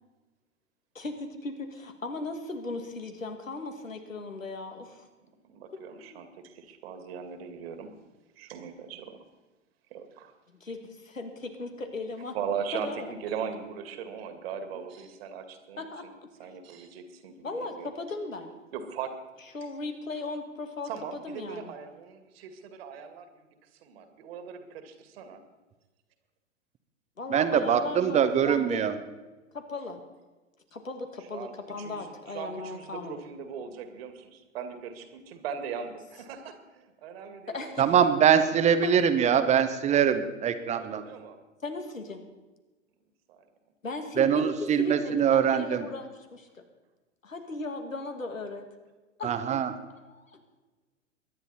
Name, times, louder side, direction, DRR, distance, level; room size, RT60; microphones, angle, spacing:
voice 1, 0.9-5.1 5.7-6.3 10.6-12.4 12.7-13.1 14.8-14.9 15.8-16.1 17.4-18.5 19.5-21.7 27.2-28.8 29.5-30.0 30.7-33.2 37.5-37.8 38.8-38.9 41.6-42.2 43.8-46.6 47.2-48.6 49.2-49.3 50.0-50.4, left 3 dB, 80° left, 6 dB, 2.3 m, -37 dB
voice 2, 5.5-8.0 8.4-9.2 9.9-10.3 12.3-16.1 16.4-17.9 18.7-19.1 20.8-25.4 31.3-37.8 40.7-41.4 43.3-43.4, right 7 dB, 50° right, 7 dB, 2.2 m, -39 dB
voice 3, 27.3-28.9 37.8-41.0 44.2-45.9 49.2-49.7, right 8 dB, 15° right, 10 dB, 1.0 m, -23 dB
22.5 x 10.5 x 4.2 m, 1.2 s
figure-of-eight pair, 105°, 39 cm